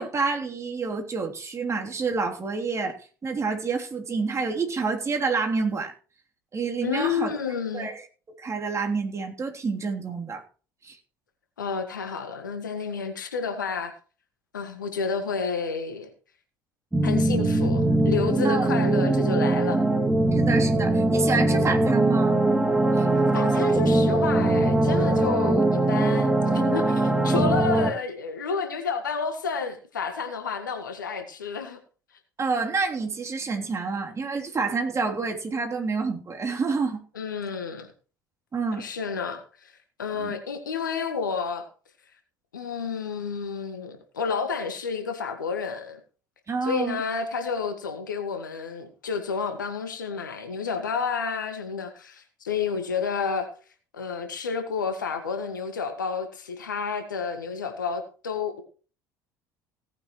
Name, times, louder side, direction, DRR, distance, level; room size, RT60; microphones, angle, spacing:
voice 1, 0.0-3.0 3.2-5.9 6.5-7.3 7.7-8.0 8.4-10.4 10.8-11.0 18.4-18.7 20.3-22.4 22.9-23.1 32.4-37.0 38.5-38.9 40.2-40.3 46.5-47.0, right 4 dB, 30° right, 1 dB, 3.2 m, -28 dB
voice 2, 6.8-7.9 11.6-13.9 14.5-16.1 17.0-19.8 23.1-31.8 37.2-37.9 38.8-39.7 40.0-41.7 42.5-46.0 46.6-53.5 53.9-58.6, left 5 dB, 85° left, 7 dB, 1.7 m, -30 dB
sound 1, 16.9-27.9, right 2 dB, 10° right, 2.3 m, -21 dB
17.5 x 9.6 x 3.1 m, 0.38 s
figure-of-eight pair, 60°, 10 cm